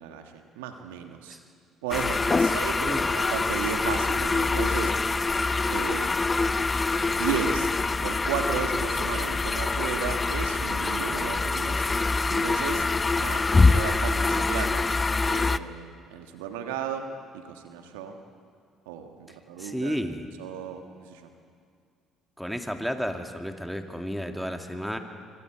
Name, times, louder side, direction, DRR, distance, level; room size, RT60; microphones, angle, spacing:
voice 1, 0.0-1.4 1.8-5.3 5.7-6.1 7.1-7.7 8.0-11.8 12.3-12.8 13.2-14.9 15.2-17.1 17.3-18.2 18.8-20.0 20.4-21.3, right 8 dB, 80° right, 6 dB, 1.6 m, -34 dB
sound 1, 1.9-15.6, left 3 dB, 25° left, 0.6 m, -25 dB
voice 2, 2.5-3.1 19.6-20.2 22.4-25.0, equal, ahead, 5 dB, 2.3 m, -32 dB
25.0 x 24.5 x 4.8 m, 2.2 s
hypercardioid pair, 55°, 0 cm